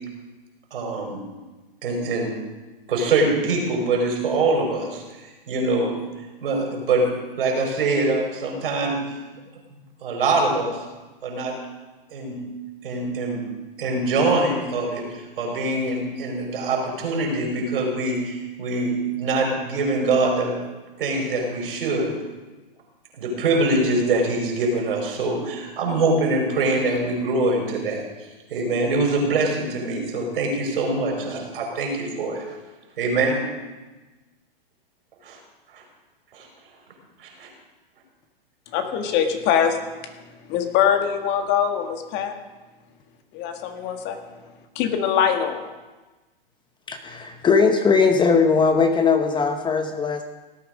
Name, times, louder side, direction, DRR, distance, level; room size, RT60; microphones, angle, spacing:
voice 1, 0.7-1.2 1.8-2.3 2.9-6.0 6.4-7.1 7.4-9.2 10.0-10.8 11.2-11.5 12.1-12.4 12.8-13.4 13.8-20.6 21.0-22.1 23.2-28.0 28.5-32.4 33.0-33.4 35.2-35.4 35.7-35.8 36.3-36.5 37.2-37.5, right 2 dB, 70° right, 0 dB, 5.0 m, -24 dB
voice 2, 38.7-39.8 40.0-40.1 40.5-42.4 43.3-44.2 44.7-45.6, left 8 dB, 35° left, 6 dB, 1.7 m, -22 dB
voice 3, 46.9-50.2, left 5 dB, 15° left, 7 dB, 0.9 m, -19 dB
17.0 x 9.2 x 5.1 m, 1.2 s
hypercardioid pair, 120°, 29 cm